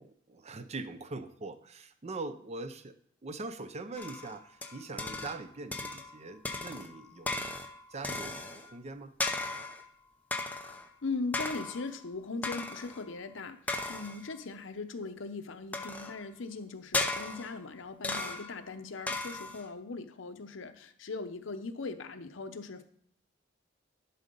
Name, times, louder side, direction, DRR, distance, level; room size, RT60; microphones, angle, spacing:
voice 1, 0.0-3.0 3.2-7.5 7.9-9.1, right 3 dB, 35° right, 10 dB, 0.5 m, -42 dB
sound 1, 4.0-5.4 5.7-6.2 6.4-8.7 9.2-9.9 10.3-10.9 11.3-11.9 12.4-13.0 13.7-14.3 15.7-16.3 16.9-17.6 18.0-18.6 19.1-19.7, left 2 dB, 10° left, 0.6 m, -36 dB
voice 2, 11.0-13.6 13.9-22.8, left 3 dB, 70° left, 8 dB, 0.7 m, -39 dB
11.0 x 3.9 x 5.3 m, 0.63 s
head